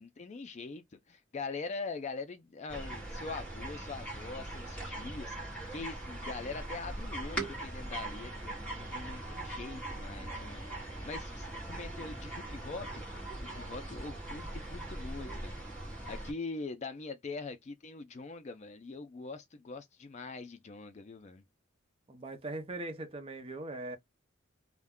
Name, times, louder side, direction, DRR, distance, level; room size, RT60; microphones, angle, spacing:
voice 1, 0.0-13.0 13.5-15.6 16.0-21.4, left 4 dB, 35° left, 0.4 m, -43 dB
sound 1, 2.7-16.3, right 1 dB, 5° left, 1.1 m, -41 dB
voice 2, 22.1-24.0, right 2 dB, 25° right, 0.6 m, -40 dB
2.3 x 2.1 x 3.5 m
head